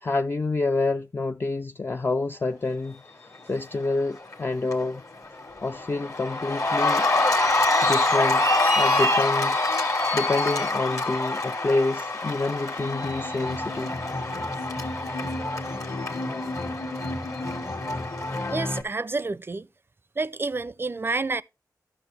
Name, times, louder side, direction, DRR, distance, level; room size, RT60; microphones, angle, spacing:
voice 1, 0.0-3.0 3.5-5.0 5.6-7.1 7.8-9.6 9.9-13.9, left 3 dB, 30° left, 0.3 m, -28 dB
Cheering, 3.9-4.3 4.7-18.8, left 2 dB, 50° left, 1.6 m, -26 dB
voice 2, 18.5-19.7 20.2-21.4, right 3 dB, 35° right, 0.4 m, -29 dB
12.0 x 6.0 x 3.2 m
cardioid pair, 45°, 7 cm